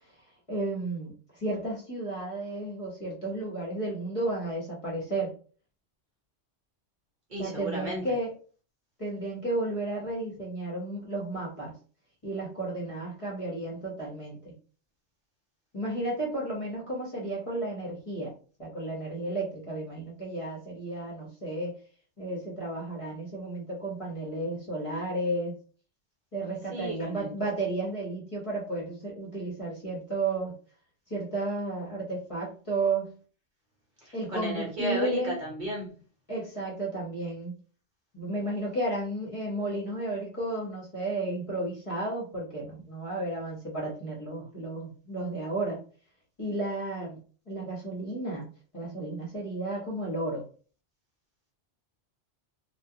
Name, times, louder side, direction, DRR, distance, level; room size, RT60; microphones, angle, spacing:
voice 1, 0.5-5.3 7.4-8.3 9.0-11.7 12.2-14.5 15.7-18.3 18.6-21.8 22.2-25.6 26.3-30.6 31.1-33.1 34.1-35.3 36.3-37.6 38.1-45.8 46.4-47.2 47.5-48.4 48.7-50.4, right 2 dB, 30° left, -5 dB, 0.9 m, -33 dB
voice 2, 7.3-8.0 26.7-27.3 34.0-35.9, right 2 dB, 45° right, -3 dB, 1.0 m, -34 dB
2.4 x 2.3 x 2.7 m, 0.40 s
omnidirectional pair, 1.2 m